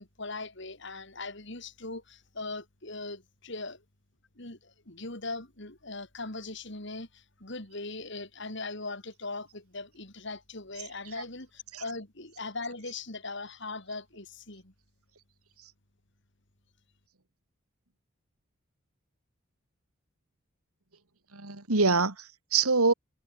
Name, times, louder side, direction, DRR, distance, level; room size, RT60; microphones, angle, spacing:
voice 1, 0.0-3.8 4.3-14.7, left 3 dB, 55° left, 3.2 m, -40 dB
voice 2, 21.3-22.9, right 4 dB, 85° right, 2.5 m, -25 dB
head